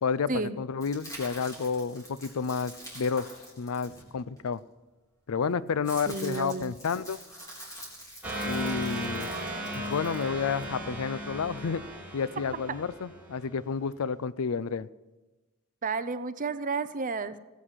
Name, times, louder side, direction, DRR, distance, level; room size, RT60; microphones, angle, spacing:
voice 1, 0.6-3.3 3.6-4.6 5.3-7.2 8.4-9.3 9.7-11.8 12.1-14.9, left 5 dB, 65° left, 18 dB, 0.5 m, -30 dB
sound 1, 0.8-4.5 5.4-10.7, equal, 15° left, 3.9 m, -46 dB
voice 2, 6.1-6.7 12.5-12.6 15.8-17.4, right 4 dB, 35° right, 13 dB, 0.6 m, -31 dB
sound 2, 8.2-13.6, equal, 5° right, 2.0 m, -36 dB
18.5 x 8.4 x 5.8 m, 1.1 s
head